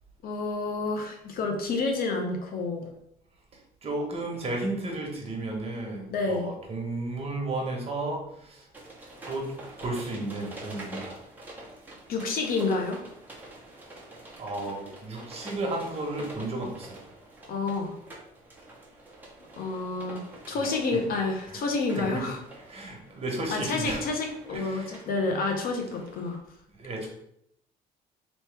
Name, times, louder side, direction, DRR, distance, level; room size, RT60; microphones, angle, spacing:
voice 1, 0.2-2.9 6.1-6.5 12.1-13.0 17.5-18.0 19.6-22.4 23.5-26.4, left 3 dB, 60° left, 2 dB, 0.9 m, -29 dB
voice 2, 3.8-8.7 9.3-9.5 9.8-11.2 14.4-17.0 21.5-21.6 21.9-22.2 22.7-24.0 24.5-25.0 26.7-27.1, right 2 dB, 35° right, 0 dB, 1.3 m, -33 dB
sound 1, 8.7-26.4, right 1 dB, 10° right, 1.1 m, -47 dB
4.2 x 3.1 x 3.4 m, 0.75 s
cardioid pair, 110°, 17 cm